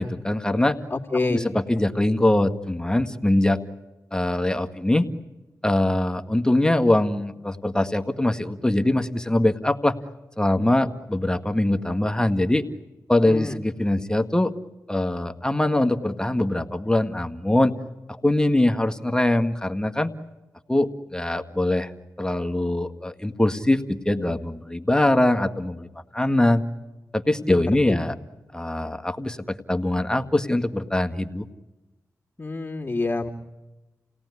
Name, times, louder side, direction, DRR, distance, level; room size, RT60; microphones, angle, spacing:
voice 1, 0.0-0.8 1.3-3.6 4.1-5.1 5.6-10.0 10.4-12.6 13.1-14.5 14.9-17.7 18.2-20.1 20.7-21.9 22.2-25.9 26.1-26.6 27.1-28.1 28.5-31.5, left 1 dB, 10° left, 6 dB, 1.8 m, -22 dB
voice 2, 0.9-1.5 13.2-13.6 27.4-28.0 32.4-33.3, left 3 dB, 25° left, -6 dB, 2.8 m, -27 dB
30.0 x 18.0 x 9.8 m, 1.1 s
cardioid pair, 40°, 7 cm